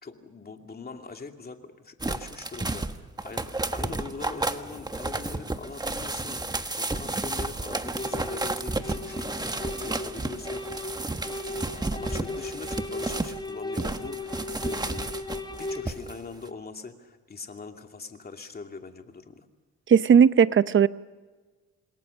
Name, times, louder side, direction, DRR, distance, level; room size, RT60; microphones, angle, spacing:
voice 1, 0.0-10.9 11.5-15.2 15.6-19.5, left 4 dB, 30° left, 2.7 m, -42 dB
sound 1, 2.0-13.4 13.7-16.1 16.5-16.6, right 2 dB, 15° right, 1.4 m, -32 dB
sound 2, 8.0-15.9, left 2 dB, 15° left, 3.5 m, -37 dB
voice 2, 19.9-20.9, right 7 dB, 40° right, 0.8 m, -17 dB
28.0 x 20.5 x 6.5 m
cardioid pair, 90°, 30 cm